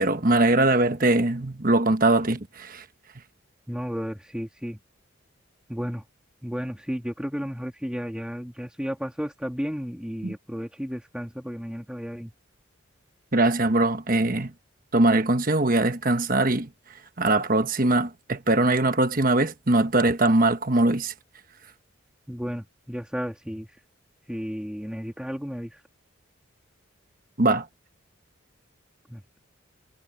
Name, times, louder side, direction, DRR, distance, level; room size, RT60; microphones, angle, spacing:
voice 1, 0.0-2.8 10.2-10.3 13.3-14.5 14.9-16.7 17.2-21.1 27.4-27.7, right 2 dB, 40° right, 1.3 m, -21 dB
voice 2, 3.7-4.8 5.7-6.0 6.4-12.3 22.3-23.7 24.3-25.8 29.1-29.2, equal, 5° right, 2.2 m, -33 dB
head